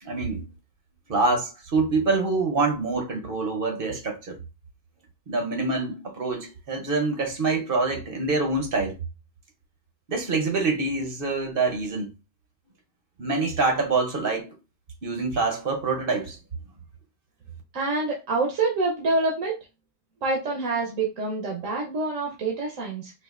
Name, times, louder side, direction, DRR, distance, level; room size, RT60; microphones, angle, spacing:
voice 1, 0.0-0.4 1.1-4.4 5.3-9.0 10.1-12.1 13.2-14.5 15.0-16.4, right 3 dB, 50° right, 0.8 m, -25 dB
voice 2, 17.7-19.5 20.2-23.1, right 3 dB, 80° right, 1.2 m, -26 dB
4.5 x 2.5 x 2.4 m
omnidirectional pair, 1.3 m